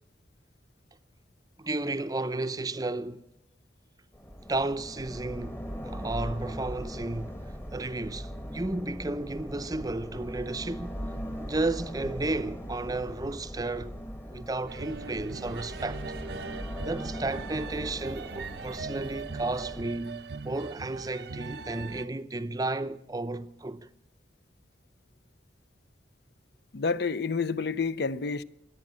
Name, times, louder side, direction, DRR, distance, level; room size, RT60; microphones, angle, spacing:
voice 1, 1.6-3.2 4.5-7.4 7.7-10.9 11.4-13.9 14.3-16.0 16.8-23.9, right 2 dB, 20° right, 0.6 m, -33 dB
sound 1, 4.1-19.8, equal, 15° left, 1.1 m, -40 dB
sound 2, 14.7-22.1, right 4 dB, 60° right, 0.6 m, -40 dB
voice 2, 26.7-28.4, left 4 dB, 60° left, 0.6 m, -29 dB
25.5 x 8.8 x 6.2 m
head